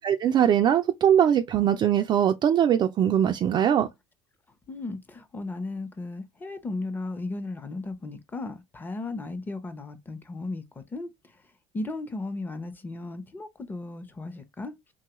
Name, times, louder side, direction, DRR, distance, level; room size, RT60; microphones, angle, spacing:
voice 1, 0.0-3.9, right 9 dB, 40° right, 0.3 m, -21 dB
voice 2, 4.7-11.1 11.7-14.7, left 2 dB, 15° left, 0.7 m, -35 dB
3.4 x 2.3 x 2.9 m
cardioid pair, 115°, 12 cm